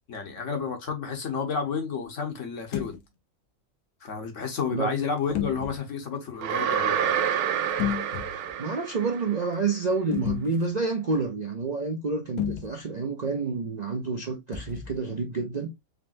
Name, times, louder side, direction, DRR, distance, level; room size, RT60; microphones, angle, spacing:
voice 1, 0.1-3.0 4.0-7.3, left 5 dB, 60° left, 1.3 m, -31 dB
sound 1, 2.6-3.0 5.3-5.8 7.7-8.5 10.1-10.7 12.4-12.8 14.5-15.0, left 10 dB, 85° left, 1.3 m, -32 dB
sound 2, 6.4-9.5, right 9 dB, 85° right, 1.1 m, -28 dB
voice 2, 8.6-15.7, right 4 dB, 50° right, 0.5 m, -29 dB
3.9 x 3.3 x 2.4 m
omnidirectional pair, 1.5 m